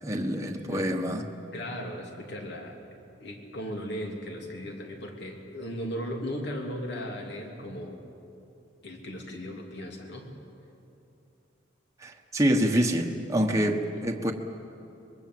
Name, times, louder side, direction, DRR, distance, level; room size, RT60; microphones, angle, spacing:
voice 1, 0.0-1.2 12.0-14.3, equal, 15° right, 1 dB, 1.3 m, -26 dB
voice 2, 1.5-2.8 3.2-8.0 8.8-10.3 13.9-14.0, equal, 60° left, 2 dB, 3.1 m, -37 dB
25.0 x 21.5 x 7.9 m, 2.8 s
head